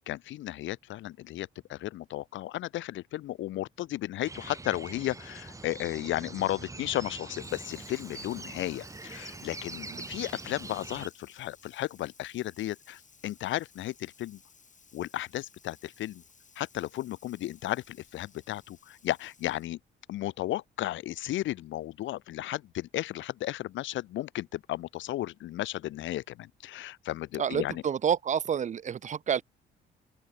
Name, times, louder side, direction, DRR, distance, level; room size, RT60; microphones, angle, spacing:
voice 1, 0.0-14.4 14.9-16.2 16.6-19.8 20.1-27.8, left 14 dB, 75° left, 0.6 m, -34 dB
sound 1, 4.2-11.1, right 3 dB, 15° right, 0.9 m, -43 dB
Water tap faucet / Sink (filling or washing), 7.3-19.8, left 5 dB, 40° left, 4.9 m, -59 dB
voice 2, 27.4-29.4, right 8 dB, 40° right, 0.5 m, -29 dB
open air
cardioid pair, 90°, 20 cm